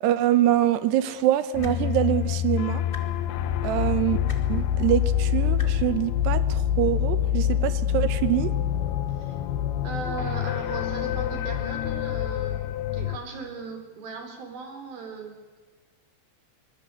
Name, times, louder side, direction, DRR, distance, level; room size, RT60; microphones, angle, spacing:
voice 1, 0.0-2.8 3.6-4.2 4.5-8.5, right 12 dB, 75° right, 13 dB, 2.8 m, -24 dB
sound 1, 1.5-13.2, left 10 dB, 70° left, 2.5 m, -26 dB
sound 2, 1.6-1.8 2.9-3.0 4.3-4.4 5.6-5.7 6.9-7.0, left 2 dB, 40° left, 0.7 m, -39 dB
voice 2, 9.8-15.6, right 4 dB, 50° right, 4 dB, 5.4 m, -38 dB
24.5 x 20.5 x 8.3 m, 1.3 s
omnidirectional pair, 5.5 m